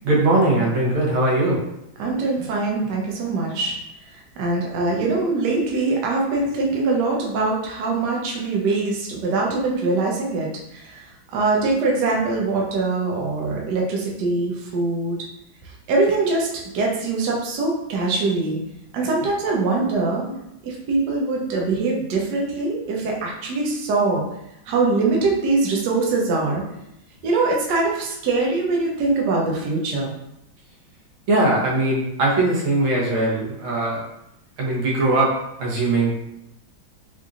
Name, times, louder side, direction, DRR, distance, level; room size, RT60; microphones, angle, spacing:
voice 1, 0.0-1.6 31.3-34.0 34.6-35.3 35.6-36.1, right 2 dB, 85° right, -4 dB, 1.8 m, -20 dB
voice 2, 2.0-3.8 4.4-11.0 11.3-15.2 15.9-16.5 16.7-18.6 18.9-20.3 20.6-24.2 24.7-26.6 27.2-30.1, right 3 dB, 65° right, -2 dB, 1.2 m, -23 dB
4.3 x 2.5 x 2.4 m, 0.83 s
omnidirectional pair, 2.2 m